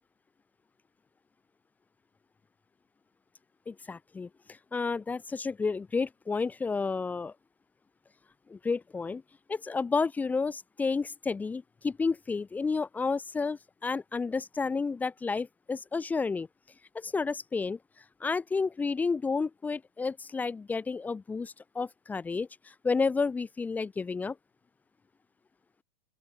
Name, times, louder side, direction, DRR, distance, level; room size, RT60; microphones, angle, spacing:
voice 1, 3.7-4.3 4.7-7.3 8.5-9.2 9.5-16.5 16.9-17.8 18.2-22.5 22.8-24.4, left 4 dB, 10° left, 2.2 m, -31 dB
open air
supercardioid pair, 165°, 21 cm